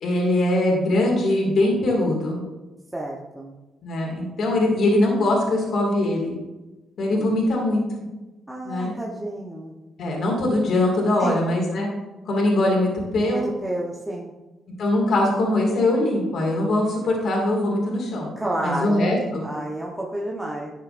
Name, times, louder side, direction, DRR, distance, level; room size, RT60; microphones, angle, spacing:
voice 1, 0.0-2.4 3.8-6.3 7.0-7.8 8.7-8.9 10.0-11.9 12.3-13.4 14.8-18.3 18.6-19.4, left 1 dB, 65° left, -1 dB, 2.2 m, -22 dB
voice 2, 2.9-3.5 7.1-7.4 8.5-9.7 11.2-11.6 13.3-14.3 18.4-19.1 19.4-20.7, right 1 dB, 10° right, -3 dB, 1.0 m, -30 dB
10.5 x 6.5 x 2.6 m, 1.1 s
cardioid pair, 90°, 0 cm